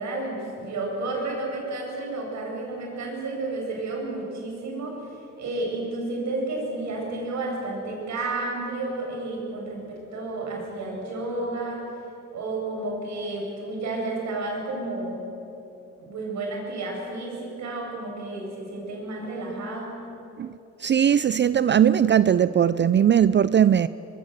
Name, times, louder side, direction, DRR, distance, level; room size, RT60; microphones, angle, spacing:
voice 1, 0.0-11.9 12.3-15.2 16.0-20.0, right 2 dB, 65° right, -1 dB, 7.9 m, -31 dB
voice 2, 20.8-23.9, right 9 dB, 40° right, 16 dB, 0.5 m, -19 dB
24.0 x 21.5 x 8.2 m, 3.0 s
cardioid pair, 90°, 30 cm